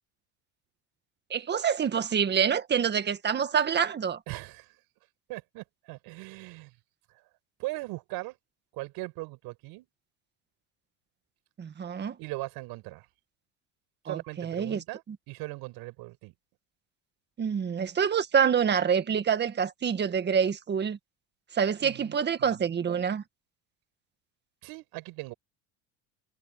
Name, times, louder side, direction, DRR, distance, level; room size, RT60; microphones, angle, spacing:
voice 1, 1.3-4.2 11.6-12.2 14.1-14.8 17.4-21.0 21.5-23.2, right 7 dB, 25° right, 1.7 m, -26 dB
voice 2, 4.3-4.7 5.3-6.7 7.6-8.4 8.7-9.9 12.2-13.1 14.0-15.0 15.3-16.3 21.8-23.1 24.6-25.3, right 22 dB, 65° right, 6.1 m, -39 dB
cardioid pair, 130°, 39 cm